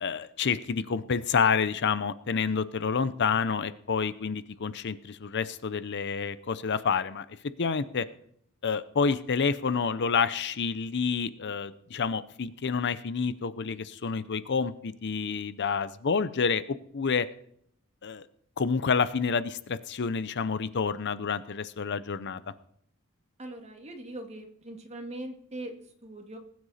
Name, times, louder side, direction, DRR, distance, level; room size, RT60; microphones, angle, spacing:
voice 1, 0.0-7.3 7.6-8.1 8.6-16.6 16.9-17.3 18.0-18.2 18.6-22.4, left 5 dB, 55° left, 15 dB, 0.6 m, -28 dB
voice 2, 23.4-26.4, right 1 dB, 30° right, 4 dB, 2.0 m, -41 dB
20.0 x 9.5 x 4.2 m, 0.68 s
head